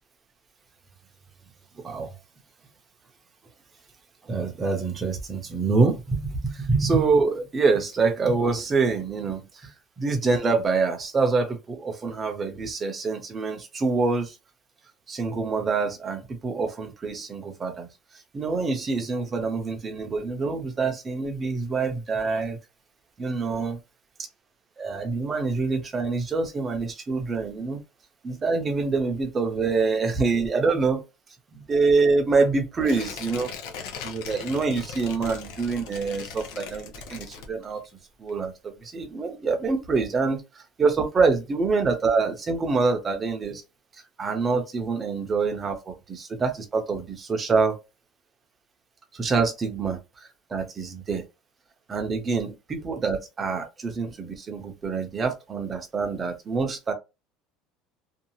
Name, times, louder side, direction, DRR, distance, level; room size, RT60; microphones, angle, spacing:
voice 1, 1.8-2.1 4.2-14.4 15.1-17.9 18.3-22.6 23.2-23.8 24.8-27.8 28.2-31.0 31.5-33.5 34.0-37.8 38.2-43.6 44.2-47.8 49.1-50.0 50.5-51.2 51.9-56.9, right 4 dB, 15° right, 0.5 m, -26 dB
Tearing, 32.8-37.9 38.3-38.4, left 6 dB, 60° left, 0.7 m, -39 dB
2.7 x 2.3 x 2.8 m
cardioid pair, 180°, 0 cm